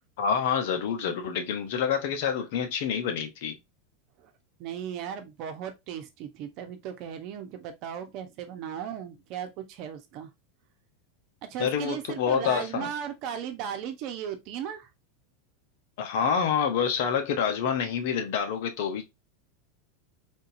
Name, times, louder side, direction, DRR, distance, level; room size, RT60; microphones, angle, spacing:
voice 1, 0.2-3.6 11.6-12.9 16.0-19.0, left 7 dB, 65° left, 0.9 m, -27 dB
voice 2, 4.6-10.3 11.5-14.9, right 8 dB, 55° right, 0.9 m, -36 dB
3.6 x 2.7 x 2.6 m
hypercardioid pair, 105°, 0 cm